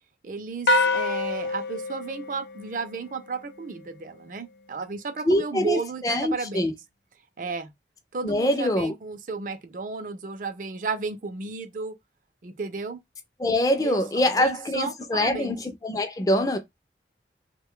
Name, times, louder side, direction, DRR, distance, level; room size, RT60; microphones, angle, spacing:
voice 1, 0.2-6.7 7.4-7.7 8.1-11.9 12.4-13.0 13.8-15.6, right 4 dB, 45° right, 0.5 m, -33 dB
sound 1, 0.7-3.2, left 2 dB, 80° left, 0.5 m, -26 dB
voice 2, 5.3-5.8 6.0-6.7 8.2-8.9 13.4-15.6 15.8-16.6, left 1 dB, 20° left, 0.4 m, -24 dB
3.0 x 2.2 x 3.6 m
head